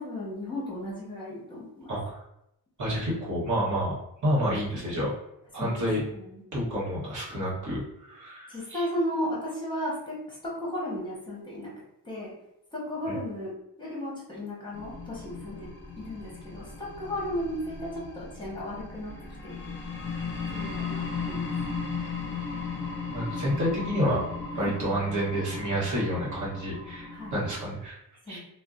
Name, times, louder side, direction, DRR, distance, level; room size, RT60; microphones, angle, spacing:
voice 1, 0.0-1.9 5.5-6.4 7.4-7.5 8.5-11.7 12.0-12.3 12.7-13.5 13.8-15.7 16.0-19.1 19.4-19.7 20.5-21.5 24.5-24.8 27.1-27.4 28.2-28.4, left 1 dB, 10° left, -6 dB, 1.0 m, -35 dB
voice 2, 1.9-2.2 2.8-5.1 5.5-6.0 6.5-8.8 13.1-13.2 23.1-24.3 24.6-28.0 28.3-28.4, equal, 50° right, -5 dB, 1.0 m, -29 dB
sound 1, 14.7-27.7, left 4 dB, 30° left, 0.5 m, -36 dB
2.5 x 2.1 x 3.5 m, 0.81 s
wide cardioid pair, 175°, 40 cm